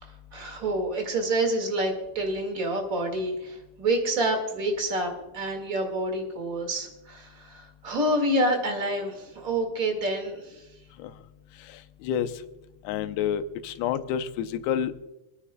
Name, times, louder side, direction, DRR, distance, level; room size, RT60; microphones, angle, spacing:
voice 1, 0.0-10.6, right 1 dB, 35° right, 3 dB, 1.3 m, -28 dB
voice 2, 11.7-12.3 12.8-14.9, left 9 dB, 90° left, 10 dB, 2.7 m, -29 dB
29.0 x 9.8 x 2.2 m, 1.0 s
omnidirectional pair, 4.5 m